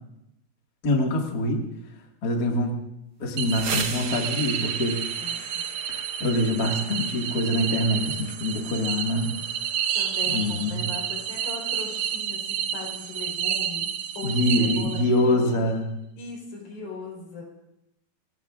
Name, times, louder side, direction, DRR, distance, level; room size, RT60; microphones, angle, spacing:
voice 1, 0.8-1.6 2.2-2.8 3.2-5.0 5.9-9.3 10.2-10.8 14.2-15.9, left 1 dB, 35° left, 0 dB, 1.8 m, -25 dB
sound 1, 3.2-12.9, right 4 dB, 50° right, 1.7 m, -40 dB
voice 2, 3.4-3.8 5.1-5.6 10.0-13.9 14.1-15.7 16.2-17.4, left 4 dB, 80° left, -1 dB, 6.0 m, -39 dB
sound 2, 3.4-15.3, right 9 dB, 80° right, 1.6 m, -30 dB
28.0 x 18.5 x 2.5 m, 0.86 s
omnidirectional pair, 4.2 m